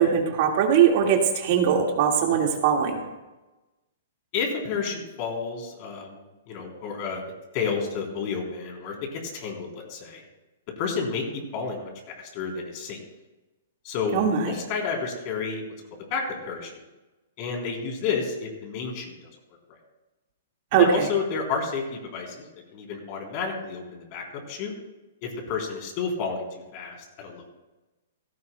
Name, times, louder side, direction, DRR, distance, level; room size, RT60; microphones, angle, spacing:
voice 1, 0.0-3.0 14.1-14.5 20.7-20.8, right 8 dB, 50° right, 2 dB, 2.0 m, -21 dB
voice 2, 4.3-7.2 7.5-10.2 10.8-11.9 12.2-13.0 13.8-15.6 16.1-16.8 17.4-19.1 19.7-19.8 20.7-22.5 22.7-24.7 25.2-27.4, left 5 dB, 45° left, 0 dB, 3.8 m, -31 dB
16.5 x 14.5 x 2.3 m, 1.1 s
hypercardioid pair, 125°, 0 cm